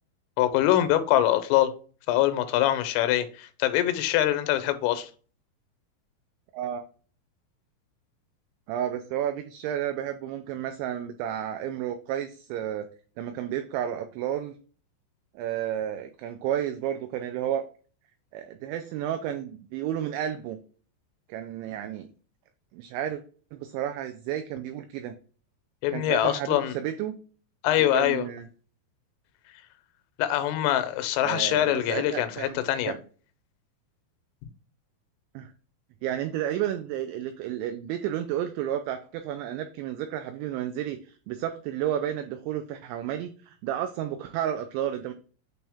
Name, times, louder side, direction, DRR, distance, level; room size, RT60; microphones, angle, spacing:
voice 1, 0.4-1.7 2.1-5.1 25.8-26.7 27.6-28.3 30.2-32.9, left 13 dB, 90° left, 3.2 m, -24 dB
voice 2, 6.5-6.8 8.7-12.9 13.2-14.6 15.4-17.6 18.3-20.6 21.3-22.1 22.7-23.2 23.5-25.2 25.9-27.2 27.9-28.5 31.2-33.0 35.4-35.5 36.0-45.1, right 10 dB, 85° right, 2.6 m, -31 dB
8.7 x 3.1 x 3.5 m
omnidirectional pair, 5.7 m